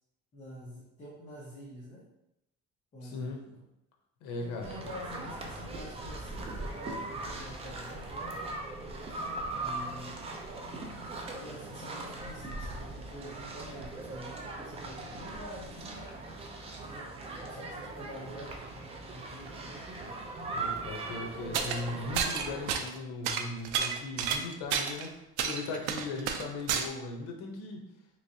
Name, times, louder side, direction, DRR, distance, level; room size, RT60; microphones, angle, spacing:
voice 1, 0.3-2.0 2.9-3.6 4.4-8.5 9.5-10.2 11.4-16.1 16.8-20.1, equal, 25° left, -6 dB, 0.7 m, -47 dB
voice 2, 3.0-3.4 4.2-4.7 20.5-27.8, left 3 dB, 75° left, 2 dB, 0.8 m, -38 dB
sound 1, 4.6-22.8, right 2 dB, 20° right, 0.4 m, -40 dB
sound 2, 21.5-21.8 22.2-23.0 23.3-25.1 25.4-26.9, right 7 dB, 90° right, 0.5 m, -30 dB
3.3 x 3.1 x 2.7 m, 0.86 s
cardioid pair, 155°, 30 cm